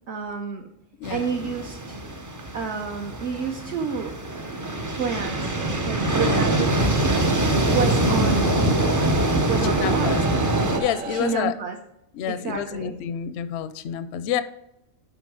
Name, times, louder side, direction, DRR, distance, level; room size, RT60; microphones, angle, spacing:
voice 1, 0.1-0.7 1.1-2.0 2.5-4.1 4.9-5.6 5.9-7.3 7.5-8.7 9.4-10.2 11.1-11.8 12.3-12.9, right 6 dB, 60° right, 3 dB, 1.0 m, -30 dB
voice 2, 1.0-1.5 6.3-6.4 9.6-10.2 10.8-11.6 12.1-14.4, left 9 dB, 65° left, 12 dB, 0.7 m, -29 dB
sound 1, 1.0-10.8, right 1 dB, 25° right, 0.4 m, -24 dB
sound 2, 5.2-11.3, right 6 dB, 80° right, 1.2 m, -35 dB
10.5 x 3.9 x 4.8 m, 0.82 s
omnidirectional pair, 1.4 m